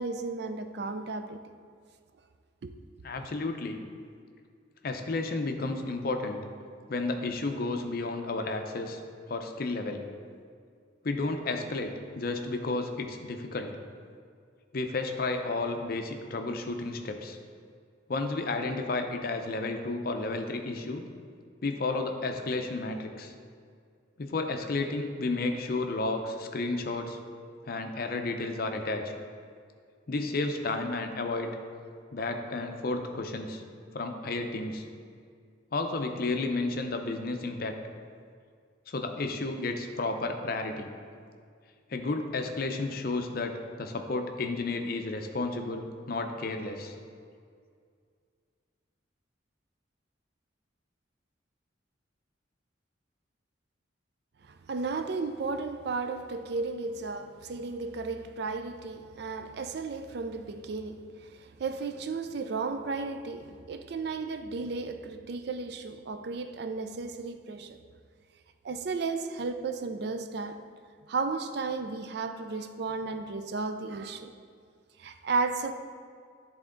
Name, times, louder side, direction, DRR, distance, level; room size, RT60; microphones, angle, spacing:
voice 1, 0.0-1.4 2.6-2.7 54.4-67.8 68.6-70.6 71.1-74.3 75.0-75.7, right 4 dB, 55° right, 0.4 m, -34 dB
voice 2, 3.0-3.8 4.8-6.4 6.9-9.0 9.3-10.0 11.0-13.7 14.7-17.4 18.1-21.0 21.6-23.3 24.2-27.2 27.7-29.1 30.1-31.6 32.1-33.6 33.9-34.8 35.7-37.8 38.9-40.9 41.9-46.9, left 3 dB, 50° left, 0.5 m, -32 dB
11.0 x 3.6 x 3.8 m
head